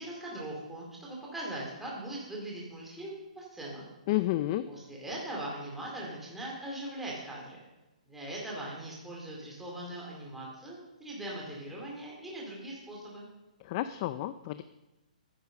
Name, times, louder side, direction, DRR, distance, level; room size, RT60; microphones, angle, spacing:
voice 1, 0.0-3.9 4.7-7.6 8.1-13.3, right 1 dB, 5° right, -4 dB, 2.4 m, -40 dB
voice 2, 4.1-4.6 13.6-14.6, left 15 dB, 35° left, 12 dB, 0.4 m, -30 dB
9.7 x 8.2 x 6.5 m, 1.0 s
hypercardioid pair, 150°, 4 cm